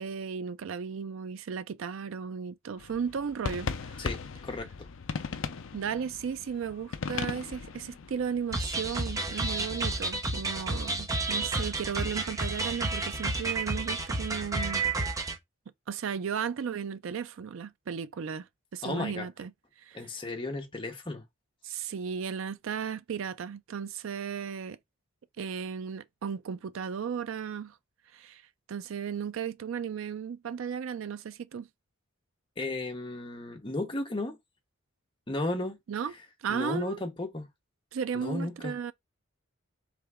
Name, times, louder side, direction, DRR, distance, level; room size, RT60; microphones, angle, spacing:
voice 1, 0.0-4.1 5.7-14.8 15.9-18.5 18.7-19.5 19.8-20.0 21.6-24.8 25.4-27.7 28.1-28.4 28.7-31.7 35.9-36.1 36.4-37.0 37.9-38.9, right 7 dB, 65° right, 0.4 m, -35 dB
sound 1, 2.8-9.8, left 5 dB, 70° left, 0.5 m, -38 dB
voice 2, 4.0-4.7 18.8-19.3 19.9-21.2 32.6-34.4 35.3-35.8 36.5-37.5 38.1-38.8, left 2 dB, 25° left, 0.9 m, -34 dB
sound 2, 8.5-15.4, right 2 dB, 15° right, 0.7 m, -31 dB
3.8 x 3.3 x 3.5 m
head